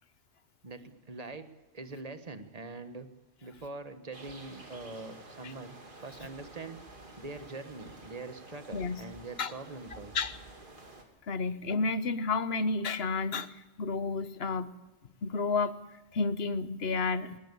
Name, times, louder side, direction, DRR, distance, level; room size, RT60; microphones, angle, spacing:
voice 1, 0.6-3.1 3.4-5.8 6.0-6.8 7.2-10.1, right 3 dB, 35° right, 9 dB, 1.5 m, -43 dB
sound 1, 4.1-11.0, right 2 dB, 50° right, 2.7 m, -50 dB
voice 2, 8.7-9.0 9.4-9.5 10.1-10.4 11.3-14.7 15.2-15.8 16.1-17.4, left 4 dB, 70° left, 13 dB, 1.3 m, -31 dB
20.5 x 19.0 x 8.5 m, 1.1 s
omnidirectional pair, 1.1 m